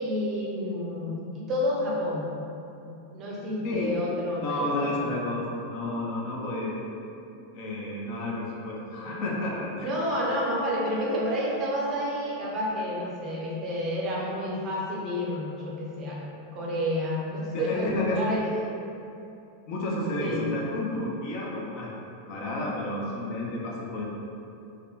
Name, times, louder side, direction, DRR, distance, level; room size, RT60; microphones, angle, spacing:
voice 1, 0.0-2.3 2.8-5.1 9.8-16.2 16.5-18.4 20.2-20.5, equal, 30° right, -5 dB, 0.7 m, -30 dB
voice 2, 4.4-6.8 7.5-9.9 17.5-18.2 19.7-21.9 22.3-24.1, left 1 dB, 40° left, -4 dB, 0.4 m, -31 dB
2.4 x 2.1 x 3.2 m, 2.7 s
figure-of-eight pair, 90°, 0 cm